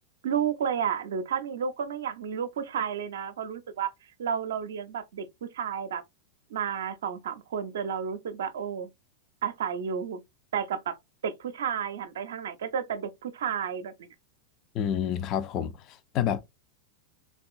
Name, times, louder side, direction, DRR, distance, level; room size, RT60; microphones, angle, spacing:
voice 1, 0.2-3.9 4.2-6.0 6.5-8.9 9.4-10.2 10.5-11.0 11.2-14.1, right 7 dB, 60° right, 0.5 m, -31 dB
voice 2, 14.7-16.4, left 9 dB, 35° left, 0.4 m, -29 dB
3.6 x 2.2 x 2.4 m
figure-of-eight pair, 90°, 0 cm